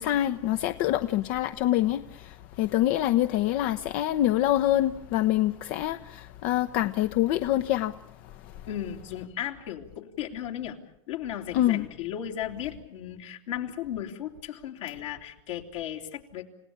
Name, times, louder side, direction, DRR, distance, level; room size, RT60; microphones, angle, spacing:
voice 1, 0.0-8.0 8.4-8.5 11.5-11.8, left 13 dB, 60° left, 0.8 m, -25 dB
voice 2, 8.7-10.8 11.1-16.4, left 10 dB, 80° left, 3.1 m, -35 dB
30.0 x 17.5 x 8.7 m
hypercardioid pair, 95°, 16 cm